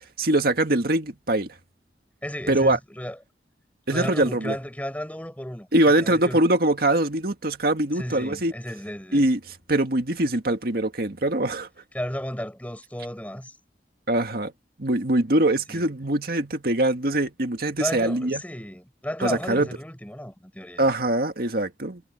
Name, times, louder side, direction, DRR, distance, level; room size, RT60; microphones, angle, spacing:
voice 1, 0.2-1.6 2.5-2.8 3.9-4.5 5.7-8.5 9.1-11.7 14.1-14.5 14.8-18.4 19.2-19.7 20.8-22.0, right 1 dB, 60° right, 1.9 m, -23 dB
voice 2, 2.2-3.2 3.9-5.7 6.0-6.4 7.9-9.2 11.9-13.5 15.7-15.9 17.8-20.8, equal, 10° left, 6.7 m, -33 dB
head